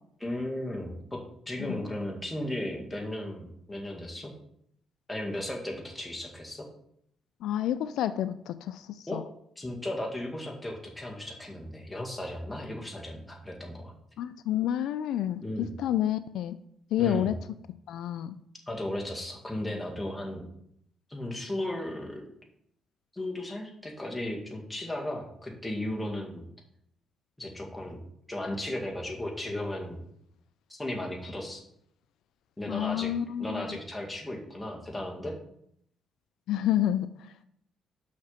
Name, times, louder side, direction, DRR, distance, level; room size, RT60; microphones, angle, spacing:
voice 1, 0.2-1.2 1.5-4.3 5.1-6.7 9.1-9.2 9.6-13.9 15.4-15.7 17.0-17.3 18.7-20.4 21.1-22.2 23.1-26.5 27.4-28.0 28.3-30.0 30.7-31.6 32.6-33.1 33.4-35.3, left 1 dB, 10° left, 0 dB, 2.1 m, -35 dB
voice 2, 7.4-9.2 14.2-16.6 16.9-17.4 17.9-18.4 32.7-33.8 36.5-37.3, left 11 dB, 80° left, 12 dB, 0.4 m, -29 dB
6.3 x 5.9 x 5.7 m, 0.71 s
cardioid pair, 90°, 0 cm